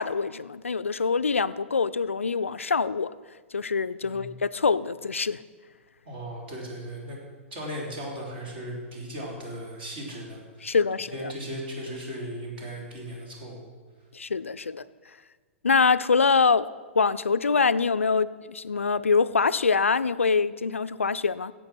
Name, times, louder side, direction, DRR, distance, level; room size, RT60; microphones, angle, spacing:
voice 1, 0.0-3.1 3.5-5.4 10.6-11.3 14.1-14.8 15.6-16.7 17.0-21.5, left 5 dB, 80° left, 15 dB, 0.4 m, -24 dB
voice 2, 4.0-4.3 6.1-7.2 7.5-10.8 11.1-13.7, equal, 50° right, -1 dB, 3.5 m, -37 dB
10.5 x 8.2 x 6.2 m, 1.4 s
figure-of-eight pair, 105°, 7 cm